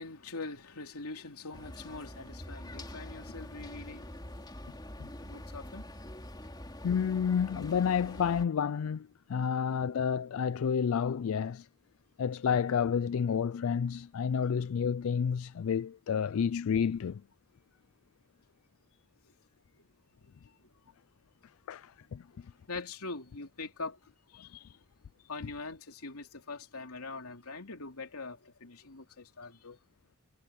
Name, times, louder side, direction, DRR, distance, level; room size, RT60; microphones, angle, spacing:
voice 1, 0.0-4.6 5.2-5.8 19.8-19.9 20.2-20.8 22.4-24.0 24.3-24.8 25.2-29.8, left 3 dB, 85° left, 3.1 m, -43 dB
sound 1, 1.5-8.4, left 1 dB, 20° left, 3.5 m, -45 dB
voice 2, 6.8-11.7 12.2-17.2 21.7-22.2, left 7 dB, 65° left, 0.4 m, -30 dB
head